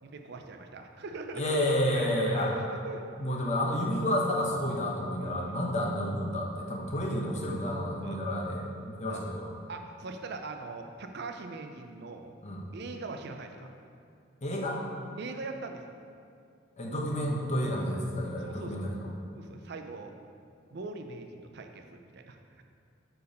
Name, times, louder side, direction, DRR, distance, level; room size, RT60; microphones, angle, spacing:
voice 1, 0.0-3.0 5.2-5.8 8.0-8.2 9.1-9.2 9.7-12.3 12.7-13.7 15.2-15.8 18.4-18.9 19.3-20.1 20.7-22.6, right 3 dB, 55° right, 5 dB, 0.5 m, -41 dB
voice 2, 1.3-2.5 3.2-9.5 12.4-12.6 14.4-14.8 16.8-19.0, left 1 dB, 35° left, -1 dB, 0.9 m, -30 dB
6.8 x 4.6 x 5.2 m, 2.3 s
head